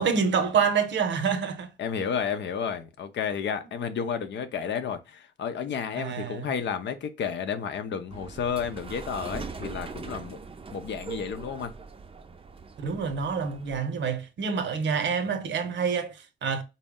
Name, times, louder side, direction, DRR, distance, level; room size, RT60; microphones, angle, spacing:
voice 1, 0.0-1.7 6.0-6.5 12.8-16.6, right 6 dB, 70° right, 0.7 m, -27 dB
voice 2, 1.8-10.4 10.7-11.7, left 7 dB, 70° left, 0.6 m, -31 dB
sound 1, 8.1-13.8, right 4 dB, 30° right, 0.5 m, -41 dB
4.2 x 2.0 x 3.5 m
cardioid pair, 70°, 20 cm